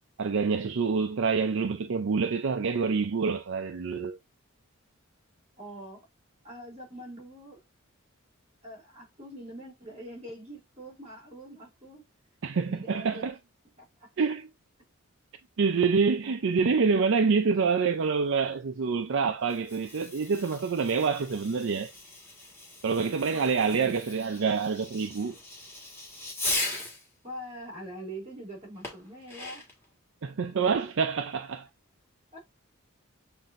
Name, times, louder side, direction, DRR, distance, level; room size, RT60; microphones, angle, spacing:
voice 1, 0.2-4.2 12.4-13.3 14.2-14.4 15.6-21.9 22.8-25.3 30.2-31.7, right 5 dB, 65° right, 0.5 m, -26 dB
voice 2, 5.6-6.1 6.4-7.6 8.6-12.0 12.6-13.3 13.8-14.1 23.3-24.0 27.2-29.7 32.3-32.4, equal, 30° right, 2.4 m, -44 dB
Fireworks, 19.4-27.1 28.8-29.8, left 2 dB, 10° left, 1.5 m, -38 dB
7.5 x 2.6 x 2.5 m
head